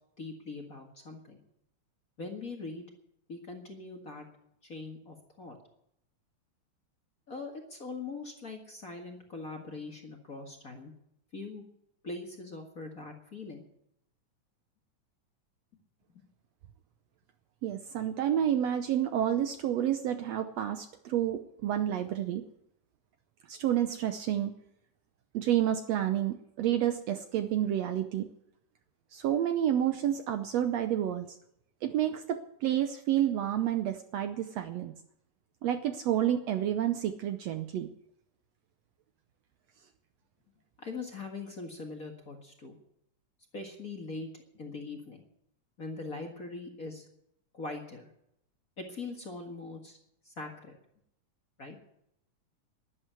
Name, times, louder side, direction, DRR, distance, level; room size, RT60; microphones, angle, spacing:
voice 1, 0.2-1.4 2.2-2.8 3.3-4.3 4.6-5.5 7.3-10.9 11.3-11.6 12.0-13.6 16.1-16.2 40.8-42.8 43.5-45.2 45.8-47.1 47.5-48.1 48.8-50.0 50.2-50.7 51.6-51.8, left 3 dB, 35° left, 2 dB, 1.7 m, -42 dB
voice 2, 17.6-22.4 23.5-24.5 25.3-28.3 29.1-31.4 31.8-34.9 35.6-37.9, right 11 dB, 70° right, 8 dB, 1.7 m, -29 dB
12.5 x 11.0 x 8.1 m, 0.75 s
omnidirectional pair, 3.6 m